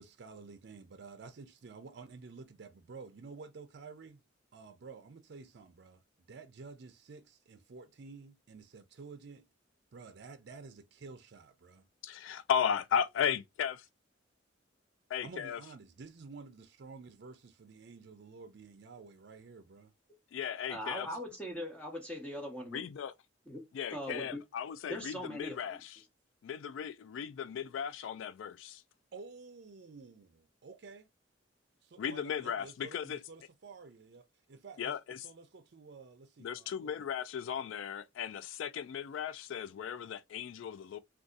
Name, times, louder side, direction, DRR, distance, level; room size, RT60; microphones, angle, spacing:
voice 1, 0.0-4.2 4.5-6.0 6.3-9.5 9.9-11.9 15.2-19.9 29.1-31.1 31.8-35.0 35.2-37.1, right 4 dB, 60° right, 0.5 m, -51 dB
voice 2, 12.0-13.8 15.1-15.6 20.3-21.1 22.7-23.1 23.7-26.0 26.4-28.8 32.0-33.2 34.8-35.2 36.4-41.0, left 8 dB, 80° left, 0.3 m, -36 dB
voice 3, 20.7-22.8 23.5-23.6 23.9-24.4 24.9-25.8, equal, 5° left, 0.6 m, -40 dB
2.6 x 2.4 x 3.6 m
head